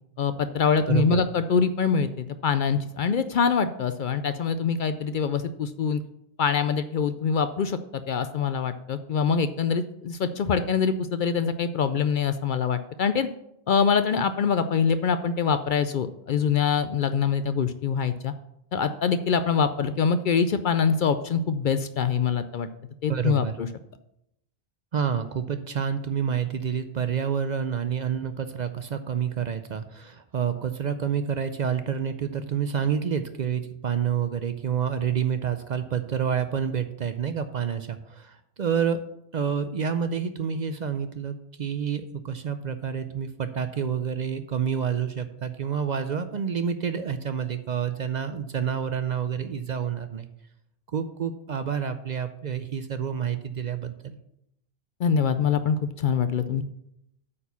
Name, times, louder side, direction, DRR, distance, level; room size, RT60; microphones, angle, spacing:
voice 1, 0.2-6.0 6.4-13.3 13.7-18.3 18.7-22.7 23.0-23.7 55.0-56.6, left 6 dB, 60° left, 10 dB, 0.6 m, -24 dB
voice 2, 0.9-1.2 23.1-23.5 24.9-39.0 39.3-50.3 50.9-54.2, right 7 dB, 50° right, 10 dB, 0.6 m, -28 dB
8.5 x 4.6 x 6.9 m, 0.78 s
omnidirectional pair, 1.1 m